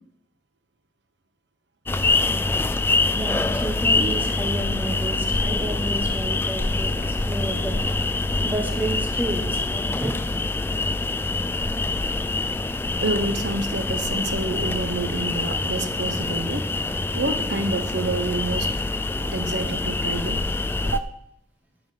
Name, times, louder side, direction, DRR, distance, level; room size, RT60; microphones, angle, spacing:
sound 1, 1.9-21.0, left 3 dB, 10° left, 0.3 m, -25 dB
voice 1, 3.1-7.8 8.1-10.5 16.3-16.4 19.2-19.3, right 1 dB, 10° right, 2 dB, 1.1 m, -31 dB
voice 2, 13.0-16.7 17.1-18.7 19.3-20.4 20.9-21.1, right 2 dB, 90° right, 8 dB, 1.0 m, -28 dB
10.5 x 5.4 x 6.8 m, 0.75 s
head